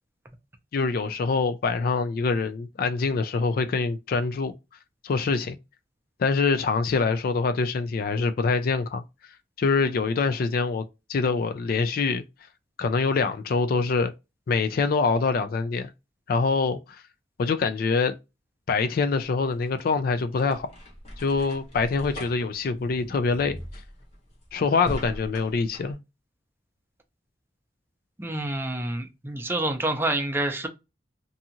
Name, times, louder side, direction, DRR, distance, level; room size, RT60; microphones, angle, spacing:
voice 1, 0.7-4.5 5.0-5.6 6.2-9.0 9.6-10.8 11.1-12.2 12.8-14.1 14.5-15.9 16.3-17.0 17.4-18.1 18.7-20.7 21.2-23.6 24.5-26.0, left 4 dB, 55° left, 0.3 m, -25 dB
sound 1, 19.2-25.9, left 1 dB, 35° left, 0.9 m, -41 dB
voice 2, 28.2-30.7, right 1 dB, 15° right, 0.5 m, -28 dB
2.7 x 2.4 x 2.7 m
head